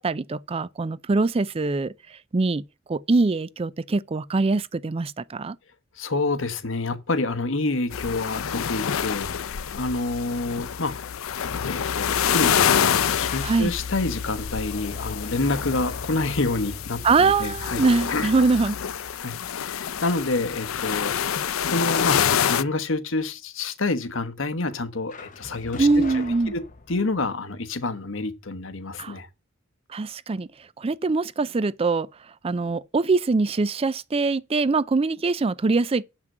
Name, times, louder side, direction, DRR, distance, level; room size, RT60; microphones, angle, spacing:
voice 1, 0.0-2.6 2.9-5.6 13.4-13.7 17.0-18.8 25.8-26.5 29.0-29.2 29.9-30.5 30.8-32.1 32.4-36.0, right 3 dB, 30° right, 0.4 m, -23 dB
voice 2, 6.0-11.1 11.7-17.8 18.1-18.3 19.2-21.4 21.6-22.2 22.5-29.3, left 2 dB, 65° left, 1.1 m, -28 dB
sound 1, 7.9-22.6, left 8 dB, 90° left, 0.5 m, -27 dB
sound 2, 12.8-19.6 25.1-27.3, left 3 dB, 40° left, 1.0 m, -43 dB
7.4 x 6.0 x 7.5 m
head